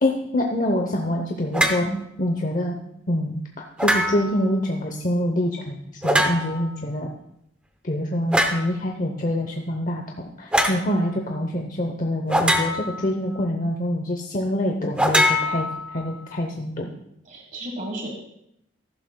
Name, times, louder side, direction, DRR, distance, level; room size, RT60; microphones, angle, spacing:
voice 1, 0.0-1.9 2.2-2.8 3.1-7.1 7.8-16.9, left 1 dB, 40° left, 2 dB, 0.8 m, -26 dB
sound 1, 1.5-1.9 3.8-4.4 6.0-6.7 8.3-8.7 10.5-10.8 12.3-13.1 15.0-16.1, equal, 5° right, 0.7 m, -22 dB
voice 2, 17.2-18.1, right 1 dB, 40° right, 2 dB, 1.4 m, -32 dB
14.0 x 12.0 x 2.3 m, 0.77 s
head